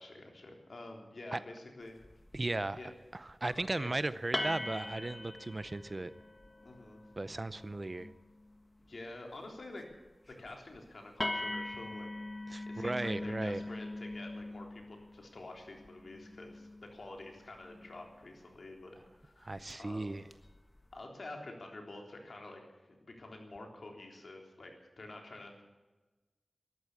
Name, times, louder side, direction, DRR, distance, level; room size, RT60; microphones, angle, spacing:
voice 1, 0.0-2.0 2.8-2.9 3.7-4.0 6.6-7.0 8.8-9.9 10.3-12.1 12.7-20.2 20.9-22.6 22.9-25.6, left 2 dB, 65° left, 2 dB, 3.7 m, -48 dB
sound 1, 2.0-2.5 3.3-3.7 4.3-8.6 10.3-10.5 10.7-10.8 11.2-18.3 19.5-19.7 20.3-20.8, left 1 dB, 25° left, 1.5 m, -42 dB
voice 2, 2.3-2.8 3.1-6.1 7.2-8.1 12.5-13.6 19.4-20.2, right 2 dB, 40° right, 16 dB, 0.6 m, -36 dB
14.0 x 12.0 x 8.4 m, 1.2 s
wide cardioid pair, 60°, 0 cm